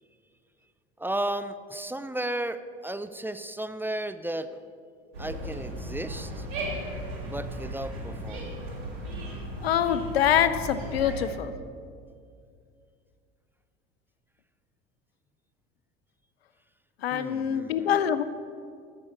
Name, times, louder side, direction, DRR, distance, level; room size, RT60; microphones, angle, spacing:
voice 1, 1.0-4.5 5.2-6.5 7.2-8.6 17.1-18.0, right 1 dB, 5° right, 12 dB, 0.5 m, -34 dB
sound 1, 5.1-11.2, right 1 dB, 80° right, 2.8 m, -36 dB
voice 2, 9.6-11.5 17.0-18.2, left 9 dB, 90° left, 12 dB, 0.6 m, -25 dB
14.0 x 7.0 x 6.6 m, 2.3 s
hypercardioid pair, 75°, 30 cm